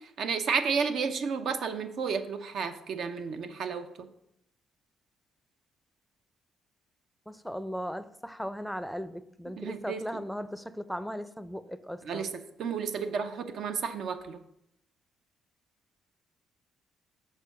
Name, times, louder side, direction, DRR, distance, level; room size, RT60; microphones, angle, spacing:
voice 1, 0.0-4.1 9.6-10.2 12.0-12.3 12.6-14.4, right 6 dB, 70° right, 8 dB, 0.7 m, -32 dB
voice 2, 7.3-12.3, equal, ahead, 12 dB, 0.5 m, -37 dB
6.7 x 4.5 x 6.0 m, 0.80 s
cardioid pair, 90°, 0 cm